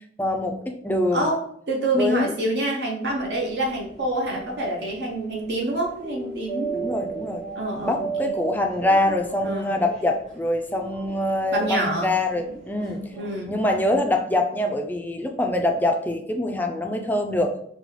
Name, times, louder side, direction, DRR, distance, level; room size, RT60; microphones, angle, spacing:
voice 1, 0.2-1.3 2.0-2.3 6.7-7.4 7.9-13.0 13.5-17.5, left 1 dB, 10° left, 3 dB, 0.3 m, -24 dB
voice 2, 1.1-7.2 7.6-8.3 9.4-9.8 11.5-12.1 13.2-13.6, right 1 dB, 60° right, -1 dB, 0.7 m, -27 dB
sound 1, 3.0-14.0, right 5 dB, 35° right, 1.5 m, -37 dB
5.2 x 2.2 x 3.0 m, 0.70 s
head